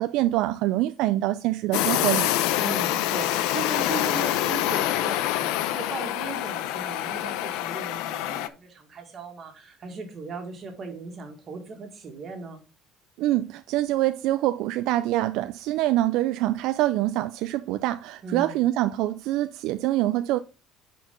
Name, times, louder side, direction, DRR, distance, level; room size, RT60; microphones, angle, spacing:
voice 1, 0.0-2.3 13.2-20.4, right 15 dB, 65° right, 0.4 m, -25 dB
sound 1, 1.7-8.5, left 13 dB, 85° left, 0.6 m, -26 dB
voice 2, 2.6-12.6 18.2-18.7, right 4 dB, 30° right, 1.9 m, -38 dB
10.0 x 4.6 x 3.7 m
cardioid pair, 170°, 0 cm